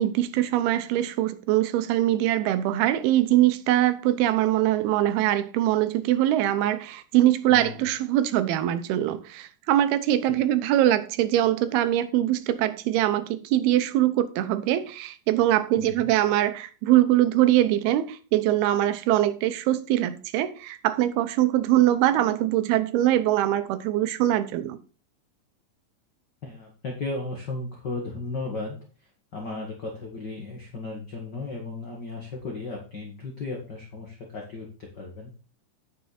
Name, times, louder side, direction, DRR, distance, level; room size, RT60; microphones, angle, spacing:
voice 1, 0.0-24.8, right 13 dB, 85° right, 2.7 m, -23 dB
voice 2, 7.5-7.8 15.8-16.1 26.4-28.8 29.3-35.3, left 3 dB, 65° left, 1.0 m, -35 dB
9.2 x 6.7 x 4.1 m
omnidirectional pair, 4.5 m